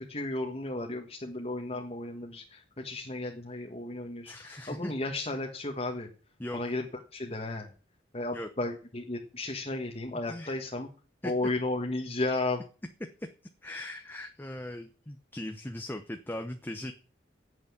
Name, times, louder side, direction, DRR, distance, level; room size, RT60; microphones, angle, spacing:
voice 1, 0.0-6.1 6.5-6.9 7.1-7.7 8.1-10.9 11.2-12.6, left 2 dB, 35° left, 1 dB, 1.6 m, -34 dB
voice 2, 4.2-4.9 6.4-6.6 8.3-8.5 10.3-10.6 11.2-11.3 13.2-13.3 13.6-16.9, left 1 dB, 10° left, 6 dB, 0.8 m, -39 dB
9.6 x 8.3 x 8.7 m, 0.38 s
head